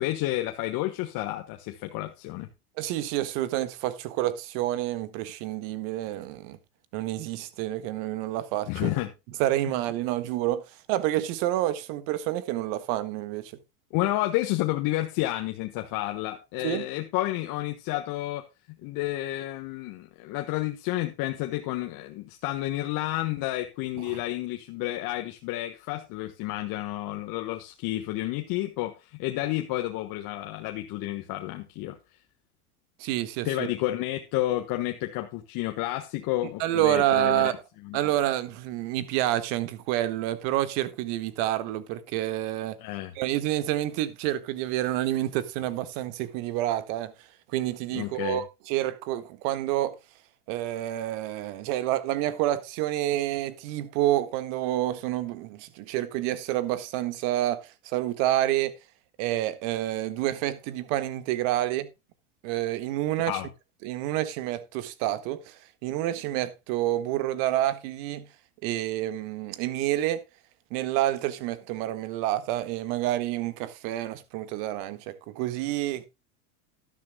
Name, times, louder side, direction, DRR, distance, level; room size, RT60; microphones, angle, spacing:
voice 1, 0.0-2.5 8.7-9.1 9.7-9.8 13.9-18.4 18.8-32.0 33.4-37.5 37.8-38.0 42.8-43.1 47.9-48.4 63.3-63.5, left 16 dB, 45° left, 1.4 m, -30 dB
voice 2, 2.8-6.6 6.9-8.9 9.4-10.6 10.9-13.5 16.6-16.8 24.1-24.2 33.0-33.7 36.6-37.5 37.9-42.7 43.1-47.1 47.5-49.9 50.5-58.7 59.2-61.9 62.4-63.3 63.8-65.5 65.8-68.2 68.6-70.2 70.7-76.1, right 14 dB, 55° right, 1.7 m, -28 dB
12.5 x 12.0 x 2.2 m
hypercardioid pair, 115°, 45 cm